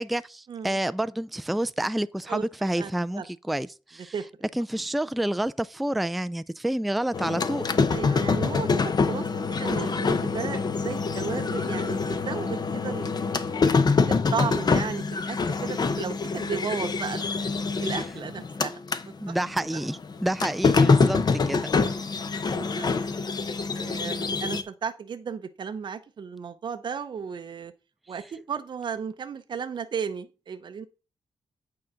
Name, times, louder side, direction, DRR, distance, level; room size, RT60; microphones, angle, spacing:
voice 1, 0.0-4.1 4.5-7.9 19.2-21.7, right 1 dB, ahead, 0.3 m, -29 dB
voice 2, 2.7-3.3 4.1-4.3 7.9-13.1 13.6-13.7 14.0-17.5 17.8-18.8 19.3-19.4 19.7-19.8 22.3-23.3 23.7-27.7 28.1-30.9, right 6 dB, 50° right, 0.6 m, -35 dB
sound 1, 7.1-19.1 19.4-24.6, left 4 dB, 45° left, 0.8 m, -25 dB
8.9 x 3.8 x 5.6 m
cardioid pair, 85°, 10 cm